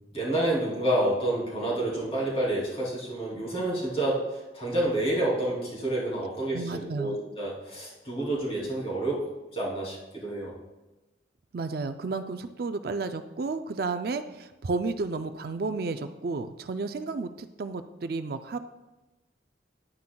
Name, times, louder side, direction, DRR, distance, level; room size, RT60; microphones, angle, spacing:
voice 1, 0.0-9.2 9.5-10.5, right 1 dB, 35° left, -4 dB, 2.9 m, -29 dB
voice 2, 6.5-7.2 11.5-18.6, right 3 dB, 55° right, 9 dB, 0.4 m, -32 dB
11.0 x 9.4 x 2.3 m, 1.1 s
head